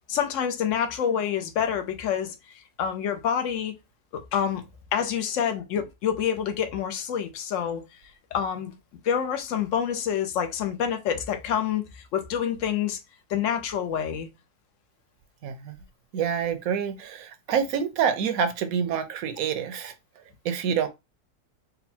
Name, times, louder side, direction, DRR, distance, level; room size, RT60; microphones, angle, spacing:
voice 1, 0.1-2.3 2.8-3.7 4.1-4.6 4.9-7.8 8.3-8.7 9.0-13.0 13.3-14.3, left 8 dB, 60° left, 0.9 m, -27 dB
voice 2, 15.4-15.8 16.1-19.9 20.4-20.9, right 7 dB, 65° right, 1.1 m, -27 dB
4.1 x 2.2 x 4.2 m
omnidirectional pair, 1.7 m